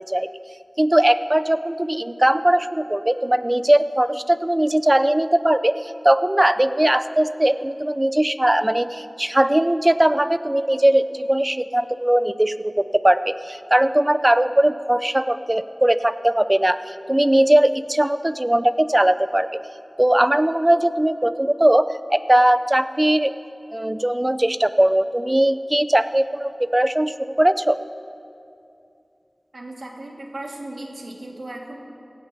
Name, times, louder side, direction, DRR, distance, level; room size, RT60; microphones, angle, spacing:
voice 1, 0.8-19.6 20.0-23.3 23.7-27.8, right 1 dB, 25° right, 13 dB, 0.4 m, -19 dB
voice 2, 29.5-31.7, right 1 dB, 85° right, -1 dB, 1.8 m, -36 dB
17.5 x 16.5 x 2.7 m, 2.6 s
wide cardioid pair, 40°, 0 cm